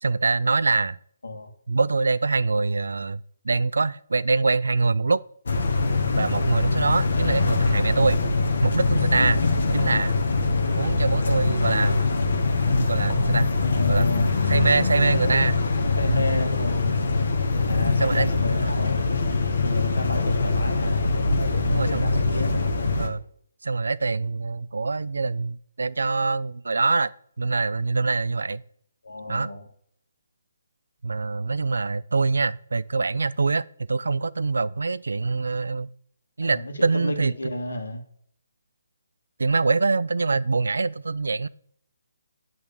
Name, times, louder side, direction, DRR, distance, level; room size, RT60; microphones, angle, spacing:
voice 1, 0.0-1.0 1.7-5.2 6.2-8.2 8.6-9.4 9.7-10.1 10.7-12.1 12.7-13.5 13.9-14.1 14.5-15.6 16.1-16.3 18.0-18.3 18.5-18.7 21.7-22.1 23.0-23.2 23.6-27.1 27.4-28.6 29.3-29.5 31.0-35.9 36.4-37.3 39.4-41.5, right 3 dB, 80° right, 0.3 m, -24 dB
sound 1, 5.5-23.1, left 3 dB, 65° left, 1.2 m, -23 dB
voice 2, 13.6-14.3 14.8-15.4 16.0-17.1 17.6-19.0 19.6-21.0 21.4-22.7 29.0-29.6 36.4-38.0, left 1 dB, 85° left, 1.8 m, -31 dB
8.8 x 3.5 x 6.7 m
figure-of-eight pair, 150°, 0 cm